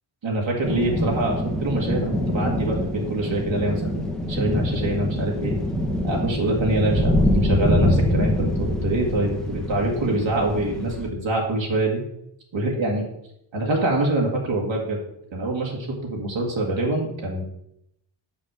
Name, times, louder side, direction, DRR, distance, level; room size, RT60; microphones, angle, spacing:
voice 1, 0.2-4.0 4.3-5.6 6.0-12.0 12.5-13.1 13.5-15.0 15.3-15.8 16.1-17.4, right 1 dB, 65° right, -1 dB, 2.0 m, -25 dB
sound 1, 0.6-11.1, left 1 dB, ahead, 1.1 m, -24 dB
6.1 x 5.8 x 6.5 m, 0.77 s
wide cardioid pair, 115°, 48 cm